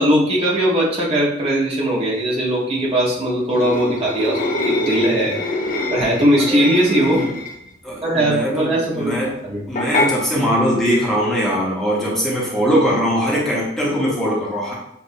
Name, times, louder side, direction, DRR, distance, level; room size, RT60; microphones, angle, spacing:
voice 1, 0.0-5.4 5.9-7.2 8.0-9.6, right 1 dB, 30° right, -5 dB, 1.0 m, -19 dB
sound 1, 3.5-7.7 9.8-10.1, left 2 dB, 45° left, 0.6 m, -24 dB
voice 2, 7.8-9.3 9.7-14.7, equal, ahead, -6 dB, 1.0 m, -21 dB
7.0 x 2.5 x 2.7 m, 0.76 s
head